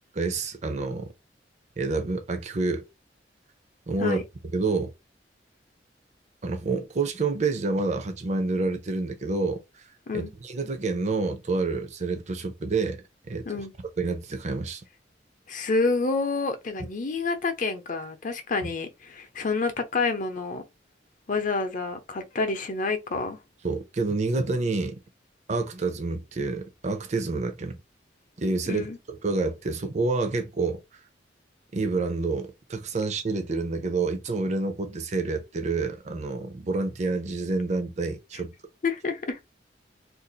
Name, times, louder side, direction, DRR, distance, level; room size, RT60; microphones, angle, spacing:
voice 1, 0.1-1.1 1.8-2.8 3.9-4.2 4.5-4.9 6.4-9.6 10.1-13.4 14.0-14.8 23.6-24.9 25.5-27.8 28.4-30.8 31.7-38.5, right 3 dB, 40° right, 0.5 m, -28 dB
voice 2, 15.5-20.6 21.3-23.4 28.7-29.0 38.8-39.4, left 3 dB, 45° left, 0.7 m, -28 dB
2.6 x 2.4 x 3.9 m
head